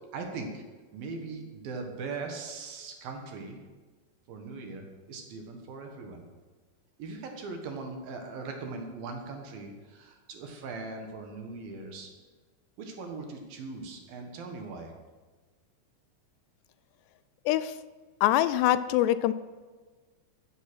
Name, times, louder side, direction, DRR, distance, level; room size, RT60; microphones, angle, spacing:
voice 1, 0.1-0.6 0.9-3.6 4.3-6.2 7.0-12.1 12.8-14.9, right 3 dB, 65° right, 3 dB, 2.9 m, -40 dB
voice 2, 18.2-19.3, left 13 dB, 85° left, 14 dB, 2.6 m, -24 dB
14.5 x 8.7 x 6.2 m, 1.3 s
omnidirectional pair, 4.9 m